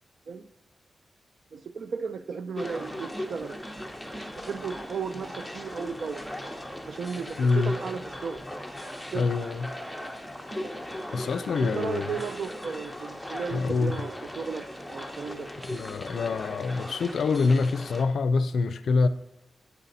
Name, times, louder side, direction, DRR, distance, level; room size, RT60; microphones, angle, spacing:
voice 1, 1.5-3.6 4.4-6.2 6.9-8.4 9.1-9.3 11.6-15.5, right 5 dB, 70° right, 0.5 m, -35 dB
sound 1, 2.6-18.0, equal, ahead, 0.9 m, -38 dB
voice 2, 7.4-7.7 9.1-9.7 11.1-12.2 13.5-14.0 15.7-19.1, left 4 dB, 75° left, 0.4 m, -25 dB
9.3 x 4.1 x 4.0 m
wide cardioid pair, 105°, 0 cm